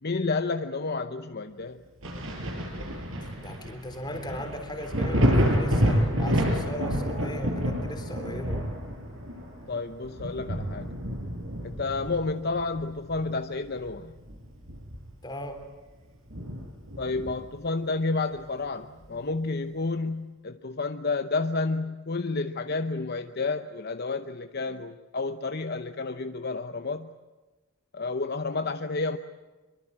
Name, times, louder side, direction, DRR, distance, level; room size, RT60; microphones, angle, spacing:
voice 1, 0.0-1.8 9.7-10.9 11.6-14.1 17.0-27.1 27.9-29.2, left 3 dB, 50° left, 8 dB, 0.8 m, -30 dB
Thunder, 2.0-13.4 13.8-15.3 15.6-15.7 16.3-17.6 19.0-19.1, equal, 65° right, 5.8 m, -29 dB
voice 2, 3.2-8.6 15.2-15.7, left 1 dB, 20° left, 6 dB, 3.6 m, -38 dB
25.0 x 23.5 x 8.8 m, 1.2 s
head